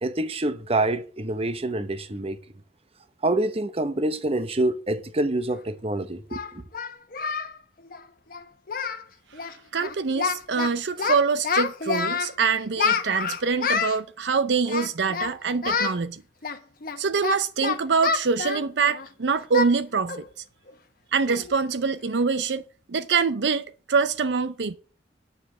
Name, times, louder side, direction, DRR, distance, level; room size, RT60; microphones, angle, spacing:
voice 1, 0.0-2.4 3.2-6.6, right 2 dB, 35° right, 0.9 m, -26 dB
Singing, 5.5-5.6 6.3-7.5 7.8-8.0 8.3-8.4 8.7-9.1 9.3-9.5 9.8-10.7 11.0-12.3 12.8-14.0 14.7-15.3 15.6-16.0 16.4-19.1 19.5-19.7 20.1-20.3 20.7-20.8 21.3-21.5, left 5 dB, 55° left, 1.1 m, -27 dB
voice 2, 9.4-16.2 17.0-20.2 21.1-24.8, right 5 dB, 70° right, 0.6 m, -25 dB
9.7 x 6.9 x 6.7 m
head